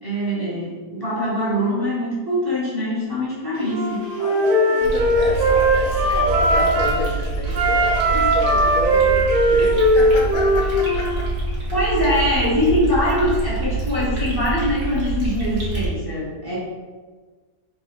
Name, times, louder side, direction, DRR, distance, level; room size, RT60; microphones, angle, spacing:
voice 1, 0.0-4.0 11.7-16.6, left 1 dB, 20° right, -7 dB, 0.8 m, -23 dB
Wind instrument woodwind instrument, 3.6-7.0 7.5-11.2, right 1 dB, 60° right, 1.0 m, -19 dB
voice 2, 4.2-11.4, left 3 dB, 70° left, 0 dB, 0.9 m, -30 dB
sound 1, 4.8-15.9, right 3 dB, 40° right, 1.1 m, -26 dB
3.3 x 2.5 x 4.4 m, 1.4 s
omnidirectional pair, 1.7 m